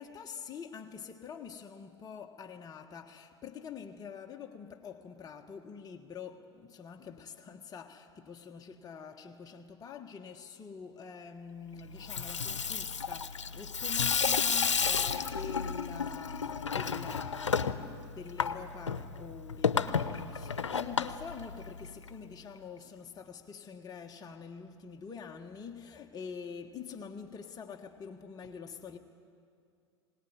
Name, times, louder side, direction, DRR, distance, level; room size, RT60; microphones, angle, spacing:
voice 1, 0.0-29.0, left 6 dB, 25° left, 1.4 m, -46 dB
Water tap faucet / Sink (filling or washing), 11.9-22.1, left 6 dB, 90° left, 0.8 m, -32 dB
22.0 x 18.5 x 9.5 m
hypercardioid pair, 90°, 15 cm